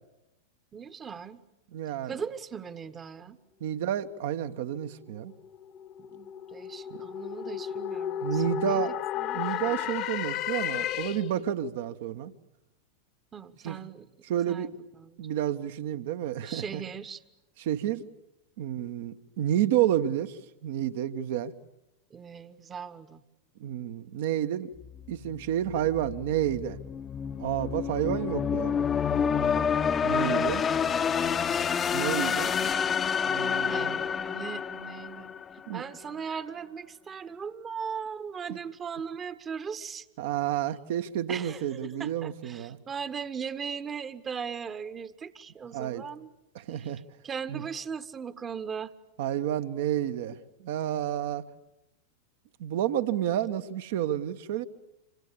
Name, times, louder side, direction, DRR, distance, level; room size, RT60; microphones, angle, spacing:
voice 1, 0.7-1.4 2.0-3.4 6.0-9.9 13.3-14.1 14.5-15.1 16.4-17.2 22.1-23.2 33.6-35.3 35.7-40.1 41.3-46.3 46.7-46.9 47.2-48.9, right 6 dB, 20° right, 13 dB, 1.3 m, -39 dB
voice 2, 1.7-2.1 3.6-5.3 6.9-7.0 8.2-8.9 9.3-12.3 13.6-13.8 14.2-14.7 15.2-16.8 17.6-18.1 18.6-21.5 23.6-24.7 25.1-26.8 27.4-28.9 30.0-30.6 31.9-32.5 33.3-34.0 35.7-35.8 38.5-38.6 40.2-42.8 45.7-46.0 46.5-47.0 47.5-47.6 49.2-51.4 52.6-54.6, right 11 dB, 55° right, 10 dB, 1.3 m, -30 dB
sound 1, 5.3-11.5, left 10 dB, 40° left, 1.3 m, -33 dB
sound 2, 24.8-35.8, left 7 dB, 20° left, 1.0 m, -29 dB
26.5 x 26.0 x 8.5 m, 0.90 s
figure-of-eight pair, 90°, 0 cm